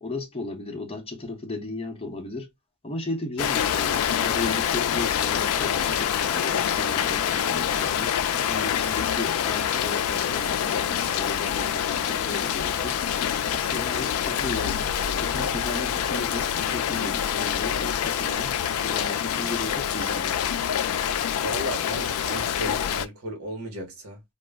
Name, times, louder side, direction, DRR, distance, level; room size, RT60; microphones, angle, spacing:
voice 1, 0.0-2.5 2.8-8.1 8.5-13.0 13.5-14.9 15.2-18.6 18.8-20.4, left 2 dB, 25° left, 0.7 m, -35 dB
Rain, 3.4-23.1, left 9 dB, 70° left, 0.3 m, -26 dB
sound 1, 12.0-16.5 17.8-17.9 18.3-20.4, equal, 50° right, 1.0 m, -51 dB
voice 2, 21.4-24.2, equal, 75° right, 1.0 m, -34 dB
2.3 x 2.0 x 3.3 m
head